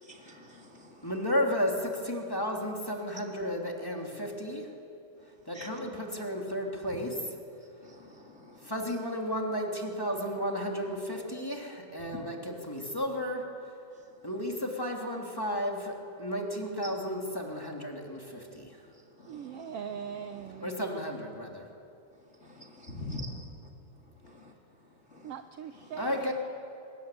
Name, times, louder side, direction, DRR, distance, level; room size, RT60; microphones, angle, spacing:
voice 1, 0.0-1.1 5.5-5.7 6.9-7.0 7.8-8.7 12.1-12.3 16.8-16.9 19.2-19.8 20.3-20.6 22.4-23.4 24.2-24.5 25.1-25.3 25.8-25.9, left 1 dB, 25° left, 0 dB, 1.8 m, -45 dB
voice 2, 1.0-4.7 5.5-7.3 8.6-13.4 14.2-18.7 20.6-21.6 26.0-26.3, equal, 5° left, 0 dB, 2.7 m, -33 dB
voice 3, 19.3-20.7 25.2-26.3, right 8 dB, 70° right, 8 dB, 1.5 m, -40 dB
25.5 x 21.5 x 9.3 m, 2.8 s
omnidirectional pair, 3.5 m